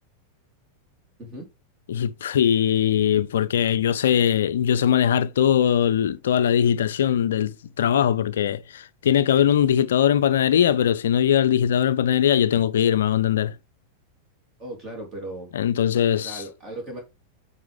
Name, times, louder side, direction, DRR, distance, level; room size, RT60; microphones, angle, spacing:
voice 1, 1.9-13.6 15.5-16.4, left 9 dB, 60° left, 0.4 m, -21 dB
voice 2, 14.6-15.5 16.2-17.0, right 1 dB, 25° right, 3.5 m, -36 dB
9.3 x 4.2 x 3.6 m
figure-of-eight pair, 90°, 0 cm